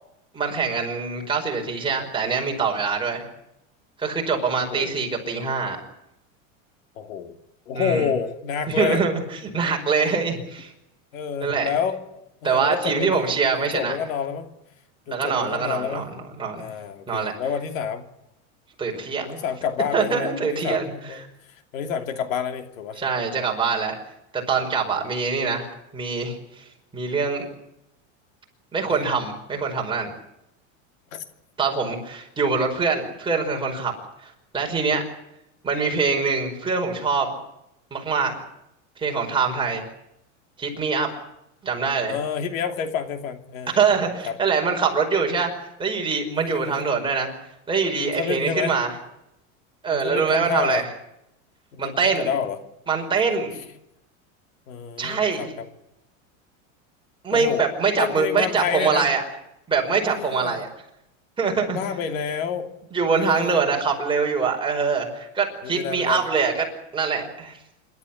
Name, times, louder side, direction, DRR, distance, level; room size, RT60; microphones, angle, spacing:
voice 1, 0.3-3.2 4.0-5.8 7.7-8.1 8.7-10.7 11.4-11.7 12.4-14.0 15.1-16.7 17.1-17.3 18.8-19.3 19.9-21.3 23.0-23.9 24.3-25.7 25.9-26.6 26.9-27.5 28.7-30.1 31.6-33.9 34.2-35.0 35.6-37.4 37.9-38.3 39.0-39.8 40.6-41.1 41.6-42.1 43.7-45.5 45.8-47.3 47.7-48.9 49.8-50.9 51.8-52.3 52.9-53.6 55.0-55.5 57.2-59.2 59.7-60.7 61.4-61.8 62.9-66.7 66.9-67.6, right 5 dB, 10° right, 0 dB, 5.2 m, -24 dB
voice 2, 7.0-7.4 7.7-9.0 9.9-10.2 11.1-13.2 13.6-14.5 15.1-16.1 16.6-18.0 19.2-21.2 21.7-23.0 28.9-29.0 31.1-31.2 42.1-43.9 44.2-44.3 46.3-46.8 48.0-48.8 49.9-50.8 51.7-52.6 54.7-55.5 57.3-57.7 58.0-59.1 60.0-60.6 61.7-62.7 63.2-63.6 65.6-66.2, left 7 dB, 90° left, 7 dB, 2.9 m, -29 dB
26.5 x 13.0 x 10.0 m, 0.86 s
supercardioid pair, 145°, 40 cm